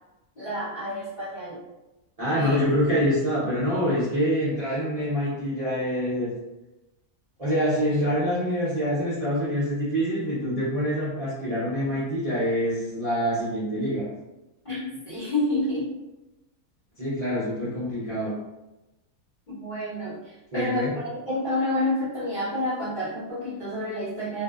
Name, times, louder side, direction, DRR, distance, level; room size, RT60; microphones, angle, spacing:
voice 1, 0.4-1.6 2.3-2.6 14.6-15.9 19.5-24.4, left 1 dB, 45° left, -10 dB, 0.7 m, -29 dB
voice 2, 2.2-6.3 7.4-14.1 17.0-18.3 20.5-21.0, equal, 40° right, -11 dB, 0.5 m, -25 dB
2.6 x 2.0 x 2.3 m, 0.99 s
omnidirectional pair, 1.6 m